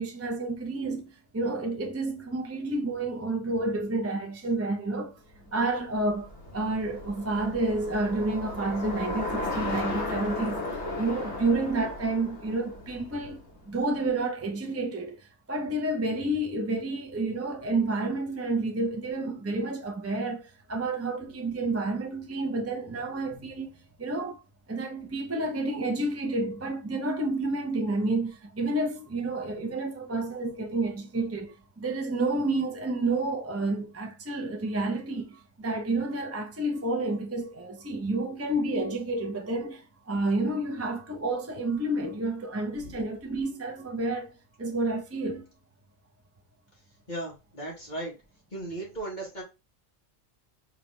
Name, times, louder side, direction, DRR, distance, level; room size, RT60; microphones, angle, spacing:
voice 1, 0.0-5.1 5.5-13.4 13.7-24.4 24.7-44.3 44.6-45.4, right 2 dB, 15° right, 0.5 m, -30 dB
Bicycle, 5.4-13.8, left 2 dB, 60° left, 1.6 m, -35 dB
voice 2, 47.1-48.1 48.5-49.4, right 1 dB, 35° left, 1.9 m, -36 dB
4.9 x 3.0 x 3.3 m
omnidirectional pair, 1.3 m